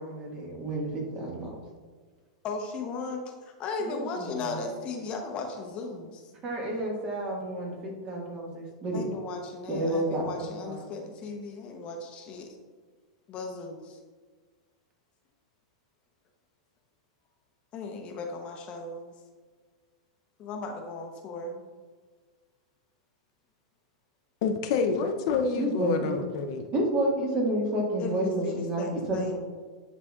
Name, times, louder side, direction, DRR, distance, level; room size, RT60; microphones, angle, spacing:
voice 1, 0.0-1.5 3.8-4.6 6.4-9.0 9.7-10.9 25.6-26.2 26.7-29.4, right 1 dB, 30° right, -1 dB, 1.7 m, -30 dB
voice 2, 2.4-6.2 8.9-12.6 13.3-14.0 17.7-19.1 20.4-21.6 28.0-29.3, left 3 dB, 35° left, 3 dB, 0.8 m, -36 dB
voice 3, 24.4-26.7, left 5 dB, 55° left, 5 dB, 0.6 m, -28 dB
9.8 x 4.0 x 2.4 m, 1.5 s
hypercardioid pair, 130°, 3 cm